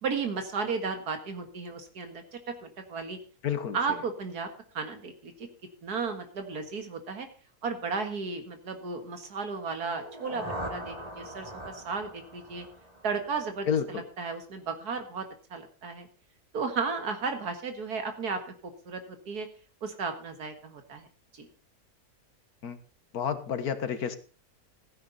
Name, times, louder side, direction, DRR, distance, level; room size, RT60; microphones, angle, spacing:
voice 1, 0.0-2.2 2.6-3.2 3.7-4.5 4.7-5.5 5.8-7.3 7.6-12.7 13.0-16.1 16.5-18.4 18.9-19.5 19.8-21.1 21.3-21.5, right 4 dB, 90° right, 7 dB, 2.2 m, -34 dB
voice 2, 3.4-3.8 13.7-14.0 22.6-22.8 23.1-24.2, left 7 dB, 75° left, 11 dB, 1.7 m, -30 dB
sound 1, 9.8-13.8, equal, 25° right, 2.4 m, -41 dB
15.0 x 9.6 x 4.0 m, 0.38 s
omnidirectional pair, 1.6 m